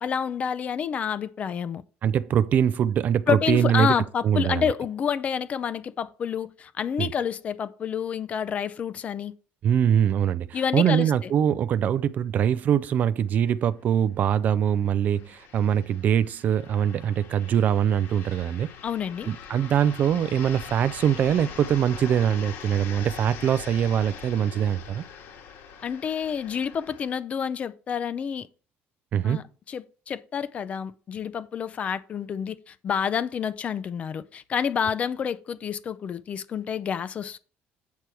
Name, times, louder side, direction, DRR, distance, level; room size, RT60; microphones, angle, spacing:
voice 1, 0.0-1.8 3.3-9.3 10.5-11.3 18.8-19.3 25.8-28.5 29.2-37.4, left 7 dB, 30° left, 0.5 m, -29 dB
voice 2, 2.0-3.9 4.2-4.7 7.0-7.1 9.6-18.7 19.3-25.0 29.1-29.4, right 9 dB, 40° right, 0.4 m, -23 dB
sound 1, 13.1-13.2 13.5-13.6 14.4-27.2, left 7 dB, 65° left, 1.7 m, -43 dB
8.3 x 6.2 x 4.4 m
cardioid pair, 170°, 5 cm